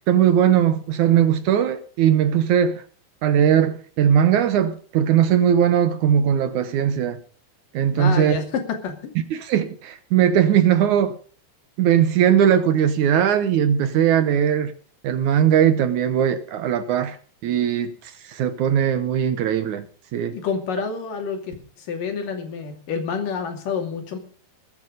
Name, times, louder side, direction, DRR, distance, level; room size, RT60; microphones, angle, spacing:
voice 1, 0.1-2.8 3.2-7.2 7.7-8.4 9.3-11.1 11.8-14.7 15.0-17.2 17.4-19.9 20.1-20.4, right 9 dB, 70° right, 11 dB, 2.2 m, -19 dB
voice 2, 8.0-9.1 20.3-24.2, left 6 dB, 70° left, 5 dB, 4.1 m, -28 dB
21.0 x 9.2 x 5.2 m, 0.42 s
omnidirectional pair, 4.0 m